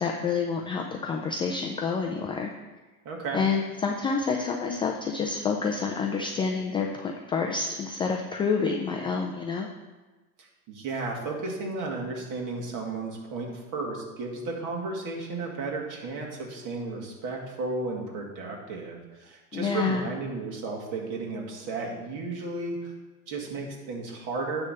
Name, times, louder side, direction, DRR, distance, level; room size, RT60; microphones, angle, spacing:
voice 1, 0.0-2.5 3.3-9.7 19.5-20.1, left 5 dB, 10° left, 1 dB, 0.3 m, -28 dB
voice 2, 3.1-3.5 10.4-22.9 23.3-24.7, right 3 dB, 40° right, 0 dB, 2.2 m, -34 dB
9.6 x 3.6 x 6.7 m, 1.2 s
hypercardioid pair, 100°, 45 cm